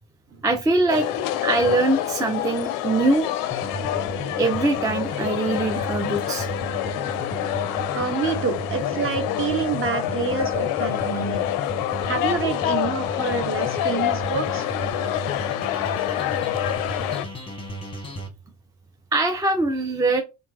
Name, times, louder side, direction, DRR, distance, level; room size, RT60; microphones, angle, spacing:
voice 1, 0.4-1.1 1.4-3.3 4.4-6.5 19.1-20.2, right 2 dB, 10° right, 0.4 m, -22 dB
sound 1, 0.9-17.3, left 13 dB, 50° left, 0.5 m, -27 dB
sound 2, 3.5-18.3, equal, 10° left, 1.0 m, -34 dB
voice 2, 7.9-11.5 12.0-14.7, right 5 dB, 30° right, 0.8 m, -27 dB
2.8 x 2.1 x 3.4 m
hypercardioid pair, 60°, 43 cm